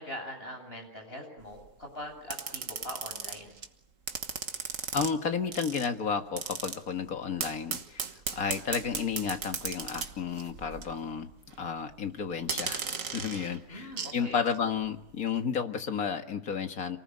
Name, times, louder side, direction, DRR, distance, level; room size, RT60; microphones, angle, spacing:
voice 1, 0.0-3.6 13.7-14.4, left 1 dB, 40° left, 3 dB, 8.4 m, -42 dB
sound 1, 1.4-1.7 2.3-3.7 4.1-5.1 5.5-5.9 6.4-6.8 7.4-11.1 11.3-11.6 12.4-14.2 14.5-14.6, right 6 dB, 60° right, 1.7 m, -37 dB
voice 2, 4.9-11.3 11.6-12.8 13.1-17.0, left 6 dB, 70° left, 6 dB, 2.1 m, -32 dB
27.5 x 19.5 x 9.6 m, 0.83 s
omnidirectional pair, 1.6 m